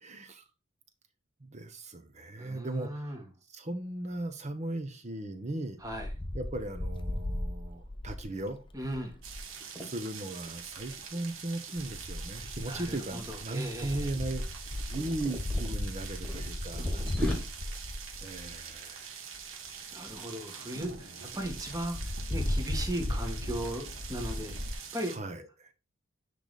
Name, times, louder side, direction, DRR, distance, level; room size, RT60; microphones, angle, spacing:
voice 1, 0.0-0.4 1.4-3.2 3.5-5.8 6.3-8.6 9.8-14.4 14.9-17.0 18.2-19.1 25.1-25.7, right 2 dB, 35° right, 1.0 m, -37 dB
voice 2, 2.4-3.2 5.8-6.1 8.7-9.2 12.6-14.1 16.9-17.1 19.9-25.1, right 1 dB, 15° right, 1.6 m, -38 dB
Wind, 5.8-9.5 10.6-11.0 11.8-18.7 19.3-19.4 19.7-19.8 20.1-20.2 20.5-20.6 20.8-21.0 21.4-24.7, left 1 dB, 25° left, 0.7 m, -36 dB
sound 1, 9.2-25.2, right 6 dB, 75° right, 1.4 m, -45 dB
sound 2, 9.6-9.9 10.3-10.5 10.8-12.7 13.4-13.6 13.9-15.7 16.2-17.3, left 1 dB, 5° left, 2.0 m, -39 dB
9.9 x 3.4 x 4.1 m
head